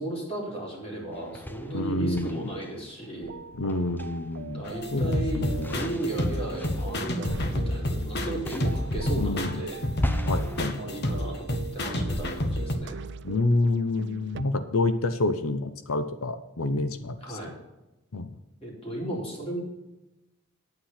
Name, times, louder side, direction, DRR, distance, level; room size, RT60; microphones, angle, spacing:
voice 1, 0.0-3.3 4.5-10.2 10.7-13.0 17.2-17.5 18.6-19.6, right 1 dB, 25° left, -3 dB, 3.9 m, -35 dB
sound 1, 1.1-3.1 3.7-4.5 5.3-8.1 8.5-10.7, left 1 dB, 10° left, 0.7 m, -36 dB
voice 2, 1.7-2.4 3.6-4.6 4.9-5.8 9.2-9.5 10.2-10.8 13.2-17.4 18.1-18.3, left 2 dB, 75° left, 11 dB, 0.8 m, -28 dB
sound 2, 3.2-14.4, right 5 dB, 55° right, 0.5 m, -42 dB
sound 3, 4.7-12.8, left 1 dB, 50° left, 1.2 m, -29 dB
9.7 x 8.9 x 5.8 m, 0.98 s
head